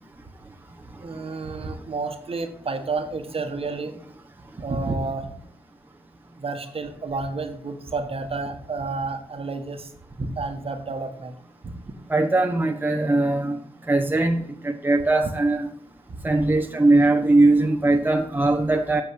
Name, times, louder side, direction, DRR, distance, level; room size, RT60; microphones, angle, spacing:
voice 1, 1.0-3.9 4.6-5.3 6.4-9.9 10.2-11.3 11.6-11.7 16.1-16.5, right 3 dB, 45° right, 7 dB, 1.4 m, -30 dB
voice 2, 12.1-13.6 13.9-15.7 16.2-19.0, right 2 dB, 15° right, 3 dB, 1.0 m, -20 dB
8.1 x 4.7 x 6.4 m, 0.63 s
supercardioid pair, 45°, 14 cm